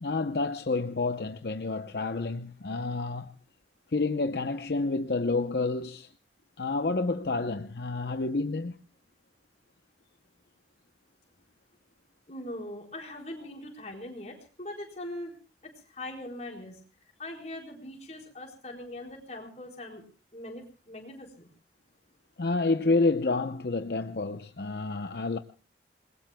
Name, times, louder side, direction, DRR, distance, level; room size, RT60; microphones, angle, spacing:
voice 1, 0.0-3.3 3.9-6.1 6.6-8.8 22.4-25.4, left 3 dB, 60° left, 0.7 m, -29 dB
voice 2, 12.3-15.3 15.9-16.8 17.2-20.0 20.3-21.5, left 1 dB, 40° left, 4.4 m, -41 dB
29.0 x 21.0 x 2.2 m
head